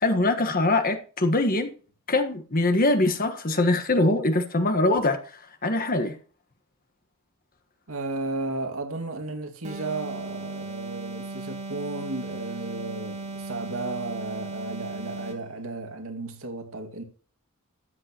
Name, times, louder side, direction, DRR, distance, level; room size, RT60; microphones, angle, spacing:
voice 1, 0.0-1.7 2.1-5.2 5.6-6.1, left 2 dB, 40° left, 1.4 m, -23 dB
voice 2, 7.9-17.0, right 2 dB, 70° right, 2.1 m, -34 dB
sound 1, 9.6-15.5, right 3 dB, 30° right, 2.3 m, -37 dB
13.0 x 8.6 x 3.0 m
head